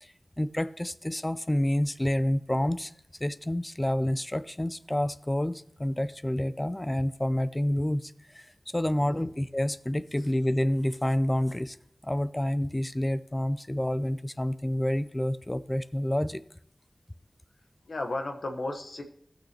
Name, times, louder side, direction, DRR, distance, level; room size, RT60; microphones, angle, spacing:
voice 1, 0.0-2.9 3.2-11.8 12.0-16.4, left 1 dB, 20° left, 14 dB, 0.4 m, -28 dB
voice 2, 8.9-9.3 17.9-19.0, left 2 dB, 85° left, 3 dB, 1.1 m, -34 dB
17.0 x 6.4 x 2.9 m, 0.71 s
wide cardioid pair, 50°, 0 cm